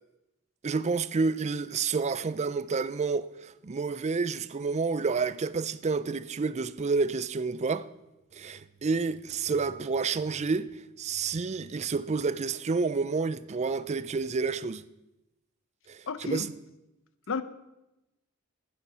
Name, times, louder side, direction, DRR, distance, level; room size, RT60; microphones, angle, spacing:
voice 1, 0.6-7.9 8.3-10.7 11.0-14.8 15.9-16.5, right 4 dB, 30° right, 0.4 m, -29 dB
voice 2, 16.1-16.5 17.3-17.4, left 4 dB, 65° left, 0.7 m, -31 dB
10.5 x 10.0 x 5.5 m
head